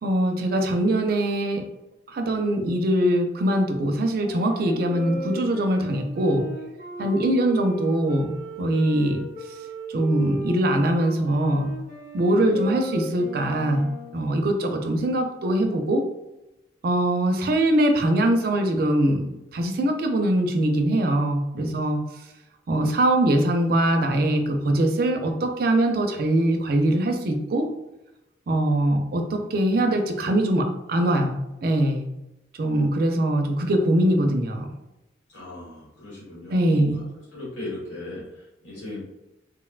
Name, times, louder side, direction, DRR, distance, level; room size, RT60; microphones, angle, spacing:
voice 1, 0.0-1.6 2.1-6.5 7.0-9.2 9.9-11.7 12.1-16.0 16.8-22.0 22.7-27.7 28.5-32.1 32.6-34.7 36.5-37.0, right 1 dB, 55° right, 4 dB, 0.4 m, -22 dB
Wind instrument woodwind instrument, 4.2-14.2, right 2 dB, 45° left, 0.9 m, -36 dB
voice 2, 35.3-37.1 37.3-39.0, left 2 dB, 90° left, -7 dB, 1.3 m, -37 dB
3.6 x 2.1 x 2.3 m, 0.95 s
head